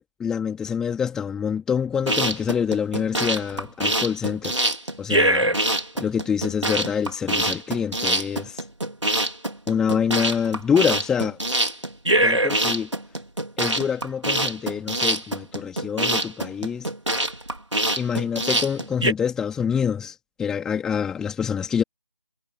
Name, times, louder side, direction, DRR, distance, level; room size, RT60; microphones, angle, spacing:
voice 1, 0.0-4.6 5.0-5.5 6.0-8.6 9.7-11.4 12.2-12.9 13.6-16.9 18.0-21.8, left 7 dB, 5° left, 3.0 m, -26 dB
sound 1, 1.9-19.1, right 1 dB, 75° right, 4.1 m, -24 dB
figure-of-eight pair, 155°, 15 cm